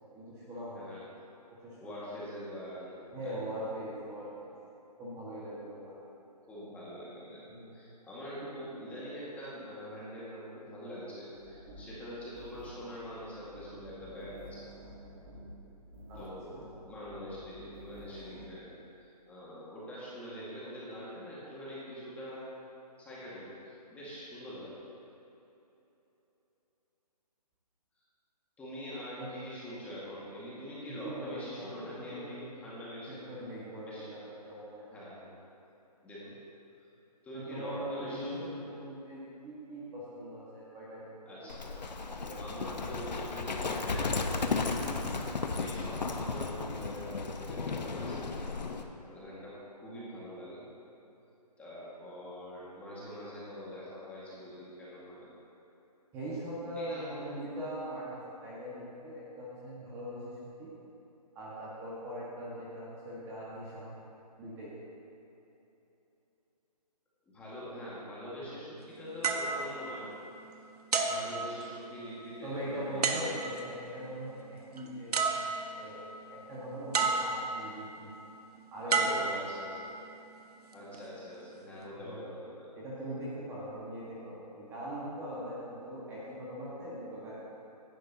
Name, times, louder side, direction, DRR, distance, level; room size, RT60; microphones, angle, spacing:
voice 1, 0.1-0.9 1.6-2.0 3.1-4.5 5.0-5.9 7.5-7.7 8.4-8.5 16.1-16.7 29.2-29.3 30.9-32.5 33.1-34.2 34.5-34.9 37.3-41.1 41.4-42.4 56.1-60.7 61.3-64.0 64.4-64.7 68.4-68.6 71.1-71.4 72.4-78.1 78.7-79.3 81.9-82.2 82.7-87.3, equal, 15° right, -8 dB, 1.6 m, -41 dB
voice 2, 0.7-1.4 1.8-2.9 3.2-3.5 6.4-7.5 7.7-14.6 16.1-16.6 16.8-22.4 23.0-24.7 28.6-33.2 33.8-34.1 34.9-35.3 36.0-36.4 37.2-38.6 41.3-41.7 42.3-44.7 45.1-48.3 48.7-50.7 51.6-55.4 56.8-57.3 67.3-70.1 71.0-73.5 78.9-79.8 80.7-82.7, equal, 5° left, -9 dB, 1.8 m, -44 dB
sound 1, 11.3-18.5, equal, 35° right, 1.7 m, -51 dB
Livestock farm animals working animals, 41.5-48.8, left 4 dB, 90° left, 1.1 m, -34 dB
sound 2, 69.2-70.4 70.9-72.1 73.0-73.7 74.8-74.9 75.1-75.9 76.9-77.7 78.9-80.0 80.7-81.0, right 4 dB, 65° right, 1.3 m, -31 dB
16.0 x 11.0 x 2.9 m, 3.0 s
hypercardioid pair, 160°, 21 cm